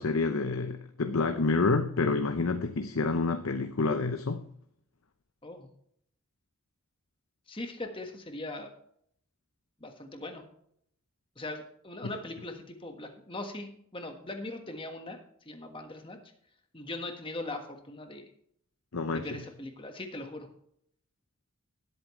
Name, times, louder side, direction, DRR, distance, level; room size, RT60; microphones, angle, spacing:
voice 1, 0.0-4.4 12.0-12.1 18.9-19.3, left 3 dB, 75° left, 7 dB, 0.7 m, -28 dB
voice 2, 7.5-8.7 9.8-10.4 11.4-15.2 15.4-16.2 16.7-18.2 19.1-20.5, left 2 dB, 25° left, 5 dB, 1.5 m, -40 dB
18.0 x 8.4 x 3.2 m, 0.68 s
head